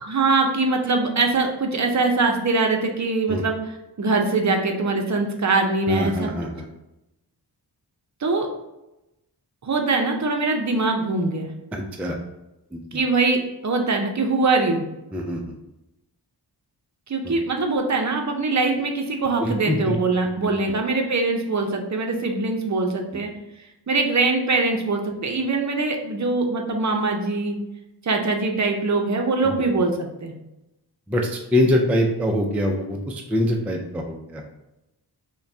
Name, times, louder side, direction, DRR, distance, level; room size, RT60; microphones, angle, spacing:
voice 1, 0.1-3.6 4.0-6.3 8.2-8.5 9.6-11.5 12.9-14.8 17.1-23.3 23.9-27.6 28.0-30.3, right 3 dB, 45° right, 2 dB, 0.6 m, -22 dB
voice 2, 5.9-6.7 11.7-12.2 12.7-12.8 15.1-15.5 17.2-17.3 19.4-20.0 20.4-20.5 23.1-23.2 29.4-29.5 31.1-34.5, left 1 dB, 5° right, 1 dB, 0.3 m, -24 dB
5.5 x 2.2 x 2.7 m, 0.93 s
wide cardioid pair, 120°, 41 cm